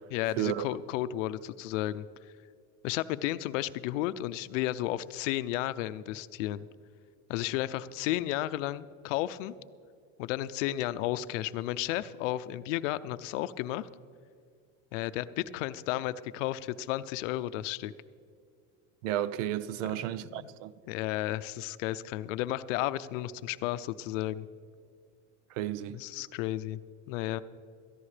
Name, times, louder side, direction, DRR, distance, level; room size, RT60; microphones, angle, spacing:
voice 1, 0.1-2.0 2.8-6.7 7.3-9.5 10.2-13.9 14.9-17.9 20.1-20.5 20.9-24.5 25.9-26.8 27.1-27.4, left 14 dB, 85° left, 0.6 m, -33 dB
voice 2, 19.0-20.7 25.6-26.0, right 12 dB, 85° right, 0.6 m, -32 dB
16.5 x 14.0 x 3.3 m
supercardioid pair, 130°, 37 cm